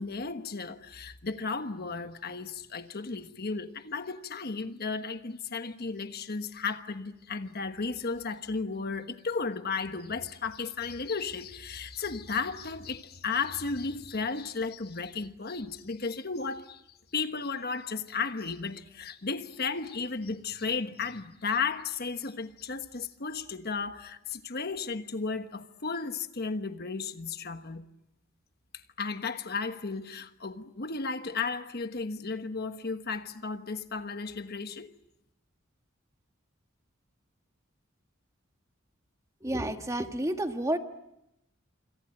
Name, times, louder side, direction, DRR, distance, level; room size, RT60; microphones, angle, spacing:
voice 1, 0.0-16.8 17.1-27.8 29.0-34.9, left 4 dB, 50° left, 1.2 m, -34 dB
voice 2, 39.4-40.8, right 1 dB, 15° right, 1.6 m, -30 dB
27.0 x 26.5 x 7.8 m
head